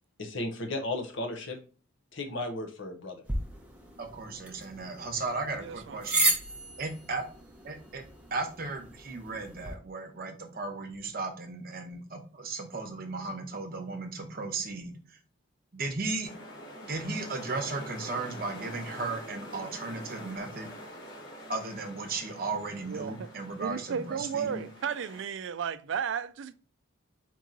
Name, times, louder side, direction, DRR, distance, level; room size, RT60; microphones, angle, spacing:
voice 1, 0.2-1.6 2.1-3.2, left 2 dB, 65° left, 0.8 m, -34 dB
sound 1, 3.3-9.7, right 2 dB, 5° right, 0.7 m, -34 dB
voice 2, 4.0-6.3 6.8-7.2 7.6-8.0 8.3-15.0 15.7-16.3 16.8-20.7 21.5-24.6, right 3 dB, 45° right, 0.9 m, -35 dB
voice 3, 5.6-6.0 22.9-23.3 23.5-26.5, right 7 dB, 65° right, 0.3 m, -34 dB
sound 2, 16.2-25.2, equal, 85° left, 2.6 m, -45 dB
4.5 x 2.9 x 3.8 m
head